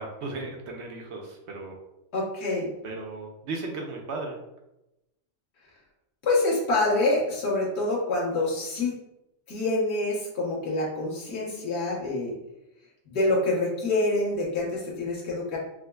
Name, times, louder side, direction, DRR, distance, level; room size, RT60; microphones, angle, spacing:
voice 1, 0.0-1.8 2.8-4.4, right 3 dB, 65° right, 1 dB, 0.8 m, -36 dB
voice 2, 2.1-2.7 6.2-8.9 9.5-12.3 13.1-15.6, left 2 dB, 55° left, -6 dB, 1.3 m, -26 dB
4.9 x 2.0 x 2.2 m, 0.91 s
omnidirectional pair, 1.4 m